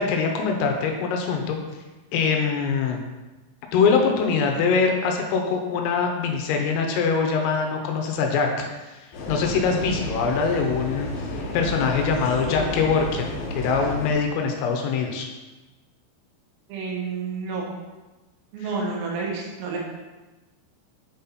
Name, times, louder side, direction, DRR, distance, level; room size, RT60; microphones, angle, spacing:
voice 1, 0.0-1.6 2.1-3.0 3.7-9.0 9.3-11.3 11.5-15.3 18.6-18.7, left 5 dB, 85° left, 2 dB, 3.4 m, -23 dB
sound 1, 9.1-14.1, left 1 dB, 65° left, 2.9 m, -31 dB
voice 2, 16.7-17.7 18.5-19.8, right 4 dB, 85° right, -2 dB, 3.9 m, -29 dB
8.6 x 4.2 x 4.0 m, 1.1 s
omnidirectional pair, 6.0 m